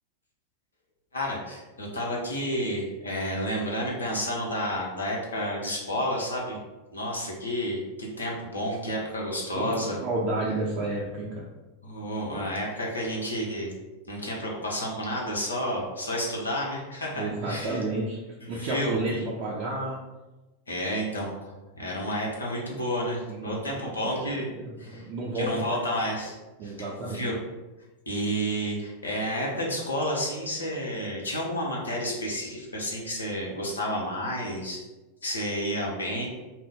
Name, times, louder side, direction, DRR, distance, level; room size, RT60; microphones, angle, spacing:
voice 1, 1.1-6.6 6.9-10.0 11.8-13.7 14.1-17.8 18.5-19.3 20.7-24.5 24.8-25.0 25.3-26.4 26.6-27.4 28.1-34.8 35.2-36.3, equal, 85° left, -3 dB, 0.8 m, -30 dB
voice 2, 10.0-11.5 17.1-18.2 18.5-20.0 23.3-24.1 24.5-25.8 26.6-27.3, right 2 dB, 40° right, -4 dB, 0.5 m, -31 dB
2.7 x 2.0 x 3.7 m, 1.1 s
figure-of-eight pair, 90°, 0 cm